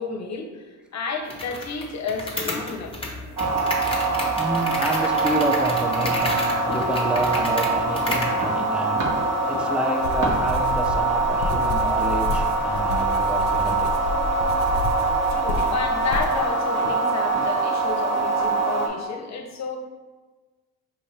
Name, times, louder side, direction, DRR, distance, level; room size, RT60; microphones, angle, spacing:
voice 1, 0.0-2.9 15.3-19.8, left 5 dB, 40° left, 4 dB, 0.8 m, -31 dB
sound 1, 1.3-8.4, left 2 dB, 15° left, 0.9 m, -32 dB
sound 2, 3.4-18.9, right 3 dB, 50° right, 1.1 m, -23 dB
voice 2, 4.4-9.1 9.5-14.1, right 1 dB, 5° right, 2 dB, 0.5 m, -29 dB
sound 3, 10.0-16.4, left 3 dB, 75° left, 0.6 m, -30 dB
5.5 x 2.5 x 3.2 m, 1.3 s
supercardioid pair, 60°, 42 cm